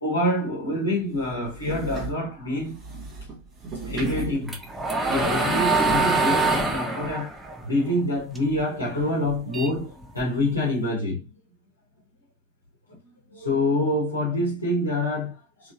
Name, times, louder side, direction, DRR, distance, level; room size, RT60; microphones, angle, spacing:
voice 1, 0.0-2.8 3.8-4.6 5.0-7.3 7.6-11.3 12.9-13.0 13.3-15.7, left 1 dB, 80° left, 1.2 m, -26 dB
sound 1, 1.1-6.2, right 3 dB, 25° right, 1.2 m, -36 dB
sound 2, 4.1-8.6 9.0-10.5, right 3 dB, 10° right, 0.8 m, -25 dB
3.7 x 3.2 x 2.5 m
figure-of-eight pair, 90°, 0 cm